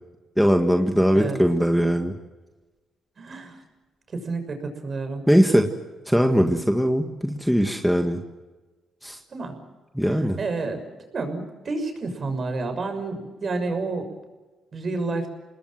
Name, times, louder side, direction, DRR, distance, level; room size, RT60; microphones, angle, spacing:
voice 1, 0.4-2.1 5.3-5.7 6.1-8.2 9.0-9.2 10.0-10.4, equal, ahead, 5 dB, 1.7 m, -20 dB
voice 2, 3.2-3.6 4.1-5.2 9.3-9.5 10.1-10.8 11.1-14.1 14.7-15.3, right 3 dB, 40° right, 7 dB, 6.3 m, -29 dB
28.5 x 20.5 x 7.7 m, 1.2 s
cardioid pair, 90°, 0 cm